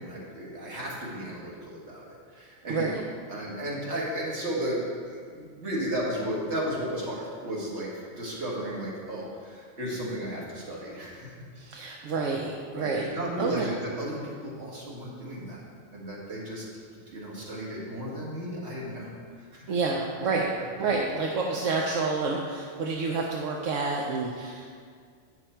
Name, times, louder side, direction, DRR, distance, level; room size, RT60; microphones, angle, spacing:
voice 1, 0.0-11.3 11.8-11.9 12.7-15.6 15.9-16.7 17.1-19.1 19.4-19.7, right 1 dB, 60° right, -5 dB, 2.1 m, -34 dB
voice 2, 2.7-3.0 11.6-13.1 13.4-13.7 19.7-20.5 20.8-24.7, right 4 dB, 80° right, 0 dB, 1.0 m, -28 dB
8.3 x 6.3 x 4.4 m, 2.1 s
omnidirectional pair, 1.3 m